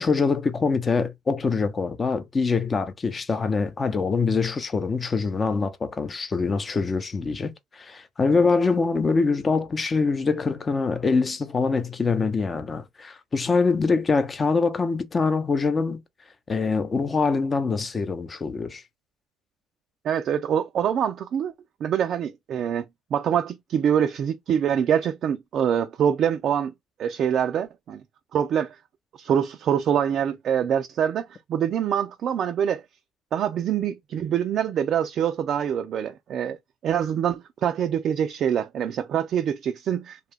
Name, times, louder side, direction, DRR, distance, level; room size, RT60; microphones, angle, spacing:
voice 1, 0.0-16.0 16.5-18.8, left 4 dB, 35° left, 0.6 m, -24 dB
voice 2, 20.0-21.5 21.8-22.8 23.1-26.7 27.0-28.0 28.3-28.8 29.2-32.8 33.3-36.6 36.8-40.3, right 9 dB, 55° right, 0.3 m, -25 dB
2.8 x 2.3 x 3.3 m
hypercardioid pair, 70°, 0 cm